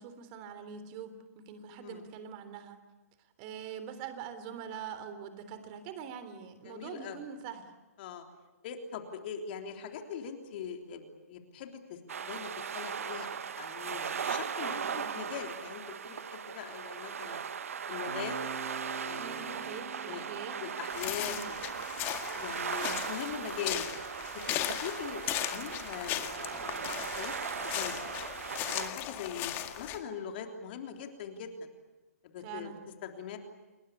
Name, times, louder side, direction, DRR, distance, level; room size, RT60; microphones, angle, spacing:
voice 1, 0.0-2.8 3.4-7.7 14.8-15.1 19.2-20.6 21.2-21.4 32.4-32.8, right 7 dB, 35° right, 10 dB, 3.5 m, -44 dB
voice 2, 1.7-2.0 6.7-7.2 8.0-8.2 8.6-17.4 17.9-18.4 19.1-19.7 20.1-20.2 20.6-21.6 22.1-23.9 24.3-27.3 27.7-28.3 28.7-31.7 32.2-32.7 33.0-33.4, left 7 dB, 40° left, 4 dB, 3.5 m, -42 dB
sound 1, 12.1-28.9, right 7 dB, 65° right, 1.4 m, -38 dB
Bass guitar, 18.1-22.0, right 3 dB, 85° right, 7.4 m, -46 dB
sound 2, 20.9-30.0, left 12 dB, 25° left, 2.0 m, -37 dB
29.5 x 21.0 x 8.5 m, 1.2 s
figure-of-eight pair, 130°, 8 cm